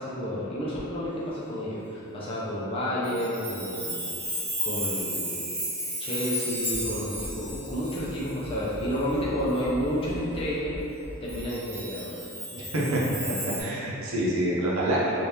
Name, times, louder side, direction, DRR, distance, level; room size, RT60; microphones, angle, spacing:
voice 1, 0.0-4.0 4.6-5.4 6.0-10.7 11.2-12.2, equal, 25° left, -8 dB, 0.5 m, -30 dB
Chime, 3.0-9.1 9.5-9.6 11.3-13.6, equal, 15° right, 1.1 m, -34 dB
sound 1, 6.6-11.5, equal, 70° left, 0.8 m, -41 dB
voice 2, 12.6-13.0 13.3-15.2, right 1 dB, 65° right, -5 dB, 0.6 m, -27 dB
2.8 x 2.5 x 3.4 m, 2.8 s
head